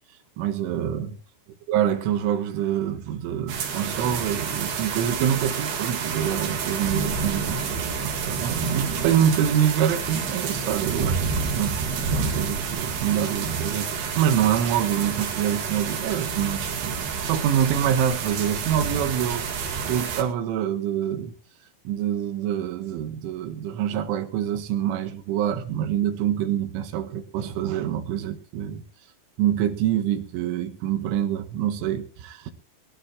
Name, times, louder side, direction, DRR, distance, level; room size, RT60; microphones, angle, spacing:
voice 1, 0.4-1.2 1.7-11.2 11.5-21.3 21.9-28.8 29.4-32.5, right 10 dB, 75° right, 3.8 m, -26 dB
sound 1, 3.5-20.2, right 5 dB, 60° right, 3.9 m, -29 dB
22.0 x 13.0 x 3.1 m
omnidirectional pair, 5.8 m